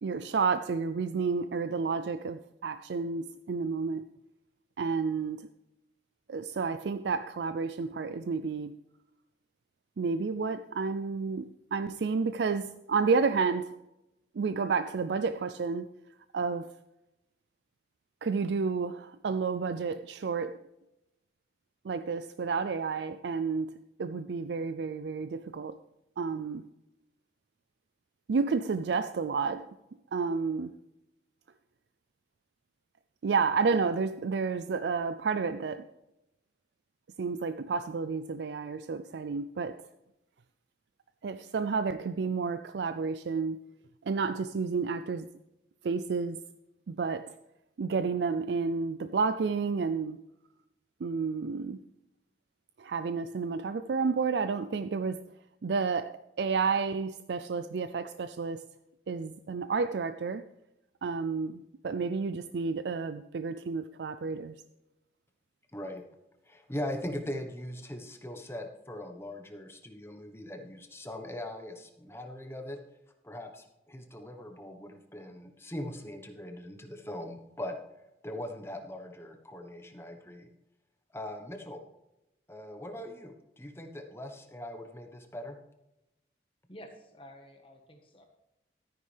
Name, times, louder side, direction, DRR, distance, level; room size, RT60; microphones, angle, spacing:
voice 1, 0.0-4.0 4.8-5.5 6.3-8.8 10.0-13.8 14.3-15.9 16.3-16.7 18.2-20.6 21.8-23.7 24.0-25.8 26.2-26.7 28.3-29.7 30.1-30.7 33.2-35.9 37.2-39.8 41.2-43.6 44.1-45.3 45.8-46.4 46.9-47.3 47.8-50.2 51.0-51.8 52.8-55.2 55.6-58.6 59.1-60.4 61.0-64.6, right 5 dB, 70° right, 0.4 m, -31 dB
voice 2, 65.7-66.0 66.4-72.8 73.2-77.8 78.2-80.5 81.1-81.8 82.5-85.6, left 1 dB, 15° left, 1.1 m, -40 dB
voice 3, 86.7-88.2, equal, 30° left, 1.5 m, -50 dB
13.0 x 9.6 x 3.4 m
head